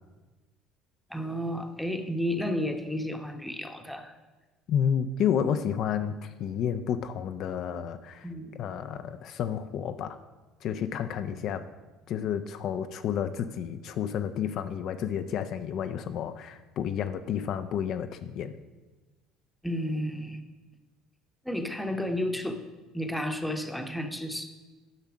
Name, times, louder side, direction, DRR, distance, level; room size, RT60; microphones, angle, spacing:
voice 1, 1.1-4.2 8.2-8.5 11.3-11.4 19.6-20.4 21.4-22.6 22.9-24.5, equal, ahead, 5 dB, 1.0 m, -32 dB
voice 2, 4.7-8.3 8.6-10.2 10.6-11.7 12.1-18.6, left 8 dB, 60° left, 8 dB, 0.5 m, -30 dB
10.5 x 5.6 x 6.1 m, 1.2 s
supercardioid pair, 105°, 0 cm